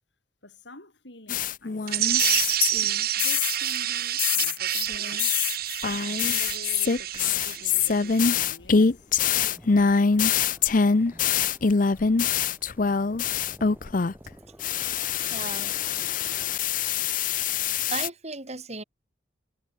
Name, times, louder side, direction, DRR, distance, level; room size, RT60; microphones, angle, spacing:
voice 1, 0.4-2.5 3.2-5.7 6.0-9.9, left 1 dB, 70° left, 7.1 m, -48 dB
sound 1, 1.3-2.9 3.2-3.8 4.2-14.3 14.6-18.1, left 6 dB, 45° left, 0.6 m, -24 dB
sound 2, 1.9-8.3, right 12 dB, 55° right, 1.4 m, -28 dB
sound 3, 7.3-16.5, equal, 10° right, 4.5 m, -51 dB
voice 2, 15.1-15.7 17.4-18.8, right 3 dB, 35° right, 4.0 m, -37 dB
head